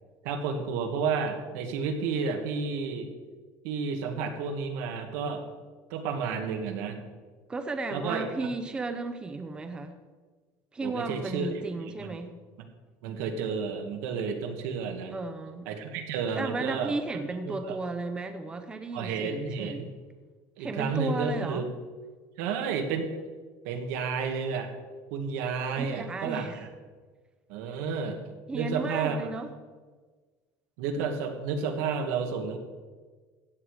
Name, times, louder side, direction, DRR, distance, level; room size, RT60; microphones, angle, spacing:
voice 1, 0.2-3.1 3.6-5.4 5.9-7.0 7.9-8.3 10.8-11.6 12.0-12.1 13.0-15.1 15.7-16.9 17.5-17.8 18.9-19.9 20.6-21.7 22.4-23.1 23.6-24.7 25.1-26.5 27.5-28.2 28.5-29.3 30.8-32.6, right 5 dB, 90° right, 5 dB, 1.9 m, -31 dB
voice 2, 7.5-9.9 10.7-12.3 15.1-15.7 16.3-19.9 20.6-21.7 25.7-26.6 28.5-29.5, right 3 dB, 10° right, 8 dB, 0.6 m, -34 dB
15.5 x 8.8 x 4.9 m, 1.4 s
cardioid pair, 175°, 8 cm